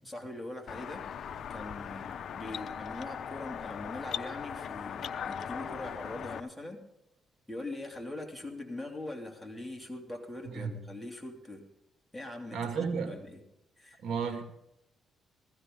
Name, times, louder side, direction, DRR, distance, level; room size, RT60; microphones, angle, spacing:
voice 1, 0.0-1.1 1.5-6.8 7.5-11.6 12.1-13.4 13.8-14.0, left 2 dB, 5° left, 2.8 m, -42 dB
sound 1, 0.7-6.4, left 8 dB, 60° left, 0.7 m, -39 dB
voice 2, 12.5-13.1 14.0-14.4, right 6 dB, 65° right, 2.3 m, -33 dB
16.0 x 14.5 x 3.8 m
cardioid pair, 90°, 0 cm